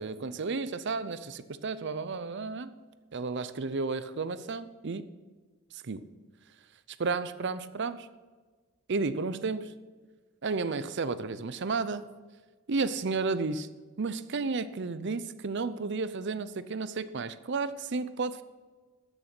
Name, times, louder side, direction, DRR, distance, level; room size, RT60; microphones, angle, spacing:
voice 1, 0.0-2.8 3.1-5.1 5.7-6.1 7.0-8.1 8.9-9.8 10.4-12.0 12.7-13.7 14.0-18.4, right 4 dB, 55° right, 14 dB, 0.6 m, -32 dB
13.5 x 6.7 x 6.1 m, 1.4 s
head